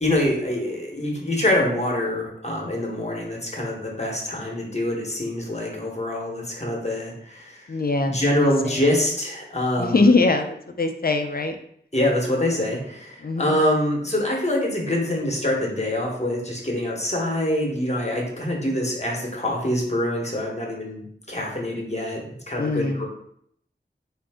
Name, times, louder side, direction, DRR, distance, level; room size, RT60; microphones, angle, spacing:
voice 1, 0.0-7.7 8.0-10.1 11.9-23.1, left 1 dB, 35° left, -1 dB, 1.1 m, -25 dB
voice 2, 7.7-8.8 9.8-11.6 13.2-13.6 22.6-23.1, left 3 dB, 55° left, 5 dB, 0.4 m, -22 dB
3.7 x 2.6 x 3.5 m, 0.68 s
wide cardioid pair, 50°, 19 cm